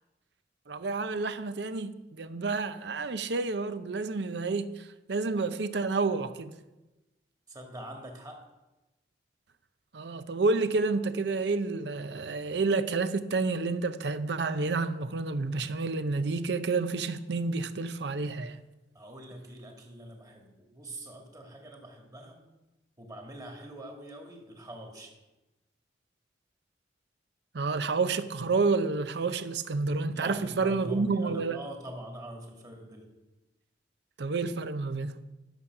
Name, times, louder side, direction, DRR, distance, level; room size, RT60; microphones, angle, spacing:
voice 1, 0.7-6.5 9.9-18.6 27.5-31.6 34.2-35.2, right 3 dB, 70° right, 0.6 m, -29 dB
voice 2, 7.5-8.4 18.9-22.4 23.0-25.2 30.1-33.1, right 1 dB, 20° right, 1.8 m, -44 dB
11.5 x 7.0 x 5.8 m
head